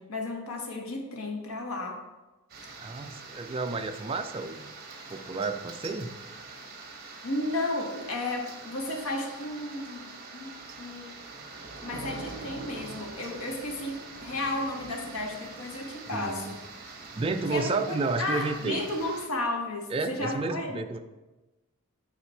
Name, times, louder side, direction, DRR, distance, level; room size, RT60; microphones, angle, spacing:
voice 1, 0.0-2.0 7.2-10.0 10.3-10.5 10.8-11.1 11.8-16.6 17.5-20.8, left 2 dB, 75° left, 2 dB, 1.2 m, -33 dB
sound 1, 2.5-19.3, right 3 dB, 45° right, 1.1 m, -44 dB
voice 2, 2.8-4.7 5.1-6.1 16.1-16.6 17.1-18.8 19.9-21.0, right 3 dB, 25° right, 6 dB, 0.3 m, -31 dB
7.7 x 4.1 x 4.4 m, 1.1 s
head